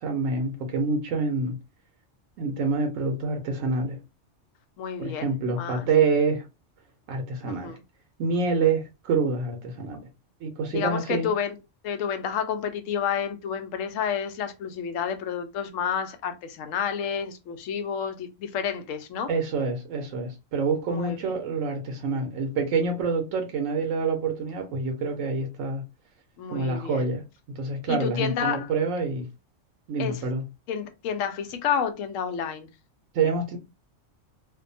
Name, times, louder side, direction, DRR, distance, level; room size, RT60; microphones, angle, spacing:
voice 1, 0.0-1.6 2.4-4.0 5.0-6.4 7.1-7.7 8.2-10.1 10.4-11.3 19.3-25.8 26.5-29.3 29.9-30.4 33.1-33.6, right 4 dB, 85° right, 1.0 m, -27 dB
voice 2, 4.8-5.9 7.4-7.8 10.7-11.6 11.8-19.3 20.9-21.3 26.4-27.1 27.9-28.7 30.0-30.2 30.7-32.7, left 7 dB, 90° left, 1.0 m, -30 dB
2.6 x 2.2 x 2.6 m
omnidirectional pair, 1.3 m